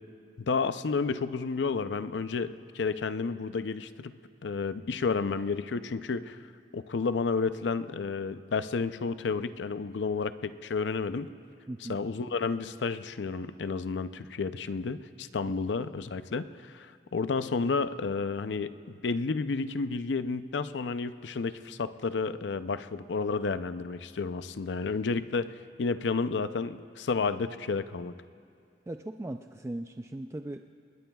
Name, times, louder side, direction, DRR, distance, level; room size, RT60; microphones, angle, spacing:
voice 1, 0.4-4.1 4.4-6.4 6.7-11.3 11.9-25.5 25.8-28.1, left 4 dB, 80° left, 12 dB, 0.5 m, -31 dB
voice 2, 11.7-12.0 28.9-30.7, right 1 dB, 15° right, 6 dB, 0.3 m, -38 dB
28.0 x 20.5 x 2.3 m, 2.4 s
head